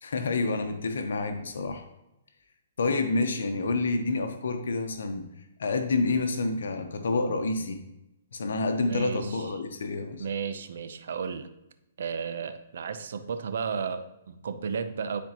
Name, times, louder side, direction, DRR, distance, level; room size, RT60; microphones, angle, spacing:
voice 1, 0.0-1.8 2.8-5.3 5.6-7.8 8.3-10.2, left 3 dB, 80° left, 6 dB, 0.9 m, -28 dB
voice 2, 8.9-9.5 10.2-11.5 12.0-15.2, right 6 dB, 70° right, 10 dB, 0.7 m, -33 dB
10.5 x 4.4 x 3.0 m, 0.89 s
hypercardioid pair, 140°, 0 cm